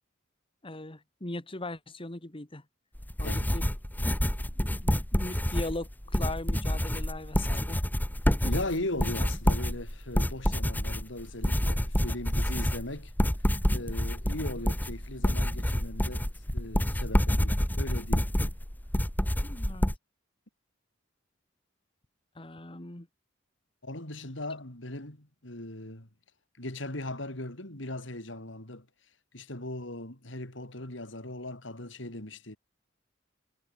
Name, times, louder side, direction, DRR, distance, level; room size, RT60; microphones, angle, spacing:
voice 1, 0.6-2.6 3.2-3.6 4.6-7.8 19.4-19.9 22.4-23.1, left 2 dB, 30° left, 1.9 m, -39 dB
sound 1, 2.9-20.0, equal, 10° left, 1.2 m, -28 dB
voice 2, 3.2-3.5 8.4-13.1 13.7-18.5 23.8-26.1 26.6-28.9 29.3-32.6, left 1 dB, 70° left, 4.4 m, -38 dB
head